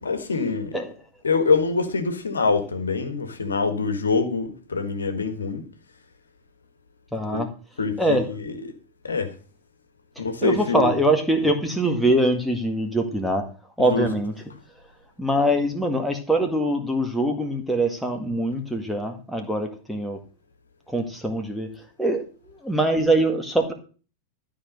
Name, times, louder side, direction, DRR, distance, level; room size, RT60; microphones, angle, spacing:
voice 1, 0.0-0.8 1.2-5.6 7.3-7.4 7.8-8.6 9.0-9.3 10.2-10.9 13.9-14.1, left 4 dB, 75° left, 1.6 m, -24 dB
voice 2, 7.1-7.5 8.0-8.2 10.4-13.5 13.8-14.3 15.2-20.2 20.9-21.7 22.0-23.7, right 1 dB, ahead, 1.9 m, -23 dB
12.5 x 5.0 x 6.6 m
figure-of-eight pair, 90°, 0 cm